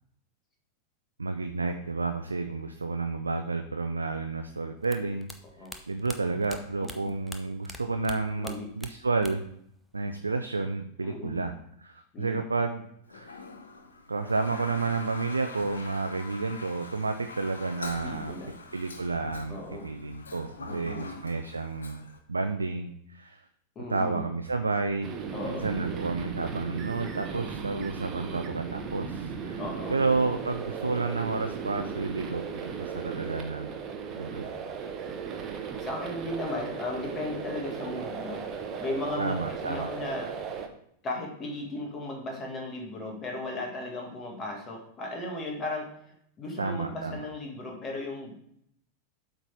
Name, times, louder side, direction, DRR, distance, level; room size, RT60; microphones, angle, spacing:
voice 1, 1.2-5.3 5.6-9.4 9.9-13.4 14.1-18.3 18.7-22.0 22.3-23.4 23.9-25.1 25.4-29.6 29.9-33.7 34.2-34.5 39.2-39.9 46.6-47.2, right 3 dB, 80° right, 6 dB, 0.4 m, -31 dB
sound 1, 4.8-9.6 9.8-10.6, left 1 dB, 5° left, 0.7 m, -44 dB
voice 2, 6.8-7.2 8.4-8.6 11.0-11.4 12.1-12.4 18.0-18.5 19.5-19.9 20.7-21.1 23.7-24.2 25.3-25.7 29.6-30.0 35.8-38.5 38.8-40.3 41.0-46.0 46.4-48.5, left 2 dB, 25° left, 0 dB, 1.8 m, -36 dB
Toilet flush, 13.1-22.2, left 3 dB, 70° left, 0.8 m, -44 dB
sound 2, 25.0-40.7, right 6 dB, 30° right, 0.9 m, -36 dB
8.0 x 4.0 x 4.5 m, 0.71 s
figure-of-eight pair, 90°, 0 cm